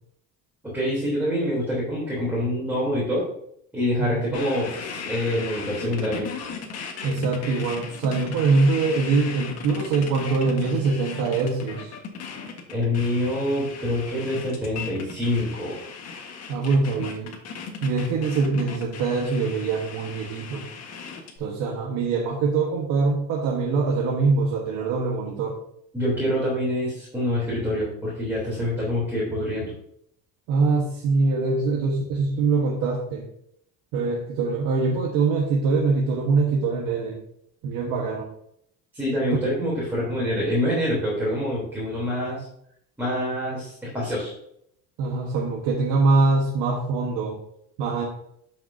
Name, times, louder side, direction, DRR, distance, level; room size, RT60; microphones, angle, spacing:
voice 1, 0.7-3.2 3.7-6.3 12.7-15.8 25.9-29.7 38.9-42.5 43.0-44.3, left 1 dB, 5° right, -7 dB, 3.4 m, -26 dB
voice 2, 4.0-4.4 7.0-11.9 16.5-17.3 17.8-20.6 21.4-25.6 30.5-33.2 33.9-37.2 37.6-38.3 45.0-47.4 47.8-48.1, right 4 dB, 85° right, -1 dB, 1.4 m, -23 dB
sound 1, 4.3-21.4, left 6 dB, 50° left, 1.6 m, -37 dB
11.5 x 5.8 x 2.8 m, 0.72 s
cardioid pair, 140°, 33 cm